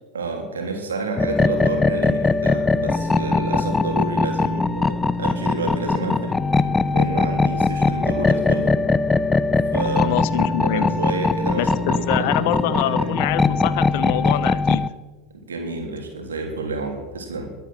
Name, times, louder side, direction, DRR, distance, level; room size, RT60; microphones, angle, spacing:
voice 1, 0.1-6.4 6.9-8.8 9.7-13.2 15.5-17.6, right 3 dB, 75° right, 3 dB, 3.2 m, -29 dB
sound 1, 1.2-14.9, left 3 dB, 15° left, 0.7 m, -21 dB
voice 2, 10.0-10.9 11.5-14.9, left 12 dB, 60° left, 15 dB, 1.0 m, -25 dB
22.0 x 9.2 x 6.2 m, 1.3 s
figure-of-eight pair, 80°, 0 cm